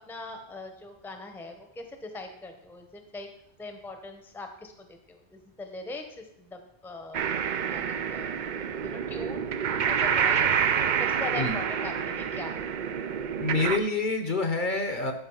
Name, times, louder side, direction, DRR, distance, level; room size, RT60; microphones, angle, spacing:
voice 1, 0.1-3.3 3.6-7.2 7.7-8.4 8.8-9.5 9.8-10.7 11.0-12.6, left 2 dB, ahead, 5 dB, 0.8 m, -41 dB
sound 1, 7.1-13.8, right 7 dB, 55° right, 0.6 m, -28 dB
voice 2, 13.4-15.1, left 3 dB, 50° left, 6 dB, 1.0 m, -27 dB
9.1 x 5.3 x 5.5 m, 0.75 s
omnidirectional pair, 1.1 m